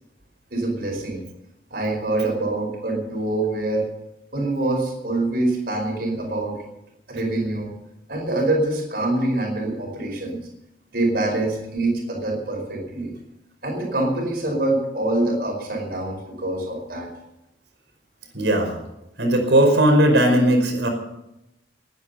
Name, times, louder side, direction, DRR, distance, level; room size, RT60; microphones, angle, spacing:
voice 1, 0.5-1.2 1.7-3.8 4.3-6.6 7.1-7.7 8.1-10.4 10.9-13.1 13.6-17.1, right 2 dB, 55° right, 1 dB, 5.2 m, -25 dB
voice 2, 18.3-18.8 19.2-20.9, right 1 dB, 85° right, 4 dB, 5.2 m, -17 dB
20.0 x 10.5 x 5.8 m, 0.89 s
head